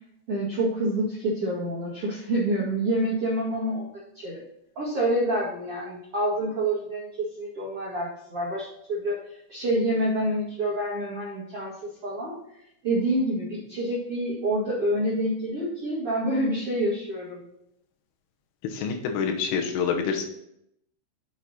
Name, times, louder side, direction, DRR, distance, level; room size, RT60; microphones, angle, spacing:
voice 1, 0.3-3.9 4.1-4.4 4.7-7.1 7.4-17.4, right 1 dB, 60° right, -6 dB, 1.5 m, -27 dB
voice 2, 18.7-20.2, left 6 dB, 80° left, 4 dB, 3.6 m, -27 dB
8.5 x 6.3 x 4.1 m, 0.76 s
omnidirectional pair, 5.8 m